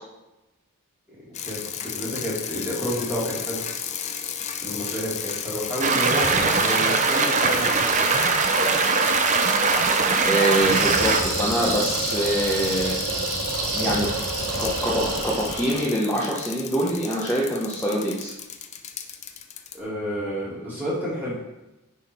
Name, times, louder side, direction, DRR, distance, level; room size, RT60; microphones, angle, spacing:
voice 1, 1.1-3.6 4.6-8.1 19.7-21.4, equal, 10° right, -7 dB, 2.3 m, -30 dB
sound 1, 1.3-19.8, left 8 dB, 30° left, 0.5 m, -34 dB
sound 2, 5.8-11.2, right 4 dB, 35° right, 0.5 m, -21 dB
voice 2, 10.2-13.0 13.8-14.1 14.6-18.3, right 1 dB, 10° left, -6 dB, 0.9 m, -24 dB
sound 3, 10.6-15.9, right 2 dB, 85° right, 1.7 m, -27 dB
9.8 x 3.7 x 4.4 m, 1.0 s
head